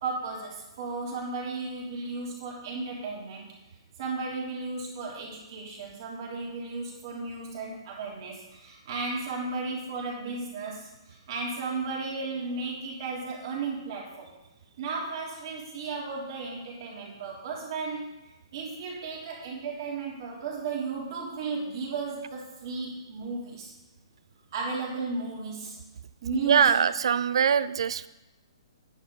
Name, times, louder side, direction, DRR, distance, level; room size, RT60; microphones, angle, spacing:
voice 1, 0.0-3.5 4.0-14.3 14.8-18.1 18.5-23.7 24.5-25.8 26.2-26.8, right 4 dB, 50° right, -3 dB, 3.2 m, -34 dB
voice 2, 26.5-28.1, right 7 dB, 65° right, 16 dB, 0.4 m, -22 dB
9.7 x 7.1 x 4.0 m, 1.0 s
hypercardioid pair, 130°, 3 cm